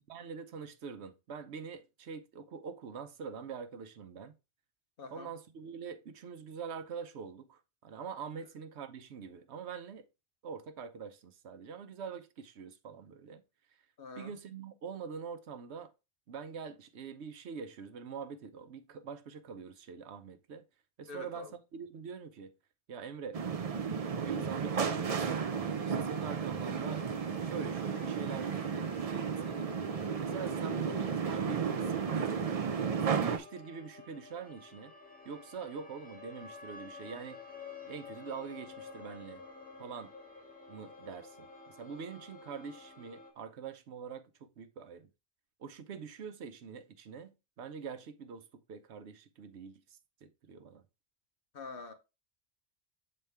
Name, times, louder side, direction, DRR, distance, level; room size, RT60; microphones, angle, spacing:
voice 1, 0.1-4.3 5.1-10.1 10.4-13.4 14.2-15.9 16.3-20.6 21.0-22.5 22.9-23.4 24.2-25.3 25.8-27.0 27.4-29.7 30.2-32.1 33.0-34.9 35.2-37.4 37.8-39.4 39.8-40.1 40.7-45.1 45.6-50.8, right 6 dB, 80° right, 1.0 m, -44 dB
voice 2, 5.0-5.3 8.4-8.5 14.0-14.3 21.1-21.6 51.5-51.9, left 4 dB, 60° left, 1.0 m, -45 dB
sound 1, 23.3-33.4, right 6 dB, 45° right, 0.5 m, -33 dB
sound 2, 24.7-43.3, left 4 dB, 10° left, 1.3 m, -51 dB
6.9 x 4.3 x 3.4 m
omnidirectional pair, 1.1 m